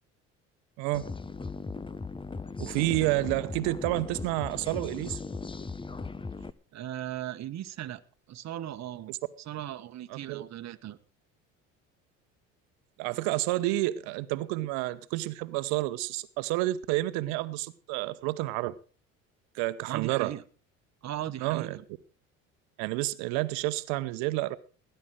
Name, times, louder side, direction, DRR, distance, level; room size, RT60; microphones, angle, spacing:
sound 1, 0.9-6.5, left 4 dB, 15° left, 0.8 m, -38 dB
voice 1, 2.6-5.2 10.1-10.4 13.0-18.8 19.5-20.3 21.4-21.8 22.8-24.6, right 18 dB, 65° right, 1.1 m, -29 dB
voice 2, 6.7-8.0 8.3-11.0 19.9-20.4 21.0-21.8, right 12 dB, 45° right, 1.2 m, -38 dB
17.5 x 10.5 x 4.8 m
hypercardioid pair, 60°, 38 cm